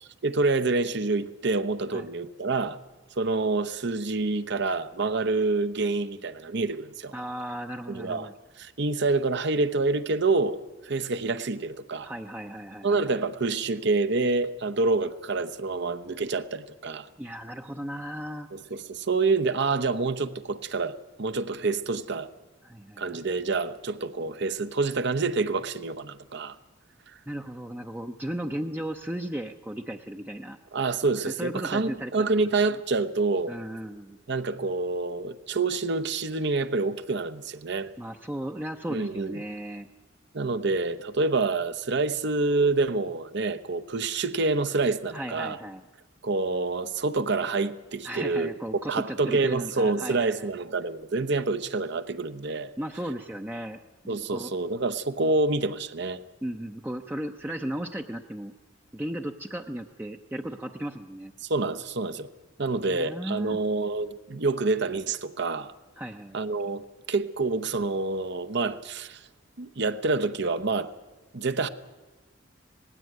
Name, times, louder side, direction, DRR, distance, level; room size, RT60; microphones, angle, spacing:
voice 1, 0.2-2.8 3.2-7.1 7.9-8.3 8.6-12.1 12.8-17.1 18.5-22.3 23.0-26.6 30.7-33.6 34.3-37.9 38.9-39.4 40.3-45.6 46.2-48.5 48.9-52.7 54.1-56.2 61.5-62.3 62.6-65.7 66.3-66.8 67.1-69.2 69.6-70.9 71.3-71.7, right 3 dB, 60° right, 0.9 m, -27 dB
voice 2, 7.1-8.4 12.0-13.2 17.2-18.5 22.6-23.2 27.3-30.6 31.3-32.1 32.6-32.8 33.5-34.2 38.0-39.9 45.1-45.8 48.0-50.5 52.8-53.8 54.3-54.5 56.4-58.5 58.9-61.3 62.8-63.6 66.0-66.4, right 1 dB, 10° right, 0.6 m, -35 dB
19.0 x 16.0 x 9.2 m
head